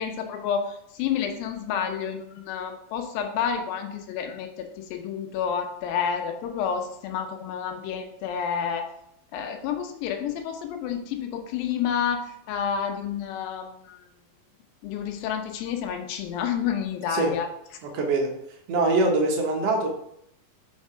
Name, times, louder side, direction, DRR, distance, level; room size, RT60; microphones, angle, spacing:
voice 1, 0.0-8.9 9.3-14.0 14.8-17.5, left 7 dB, 80° left, 4 dB, 2.5 m, -29 dB
voice 2, 17.8-18.3 18.7-19.9, right 2 dB, 75° right, 1 dB, 1.4 m, -23 dB
5.4 x 4.7 x 4.8 m, 0.75 s
omnidirectional pair, 4.3 m